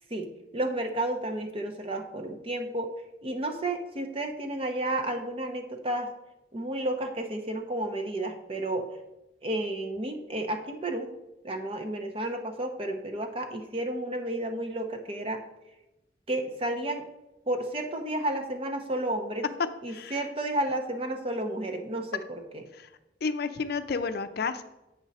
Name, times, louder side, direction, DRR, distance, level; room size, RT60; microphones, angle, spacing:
voice 1, 0.1-2.9 3.2-6.1 6.5-8.9 9.4-11.1 11.4-15.4 16.3-17.1 17.5-19.5 19.8-22.6, right 1 dB, 30° right, 5 dB, 0.8 m, -32 dB
voice 2, 19.9-20.2 22.7-22.9 23.2-24.6, left 4 dB, 55° left, 9 dB, 0.5 m, -31 dB
7.9 x 6.2 x 4.1 m, 0.95 s
head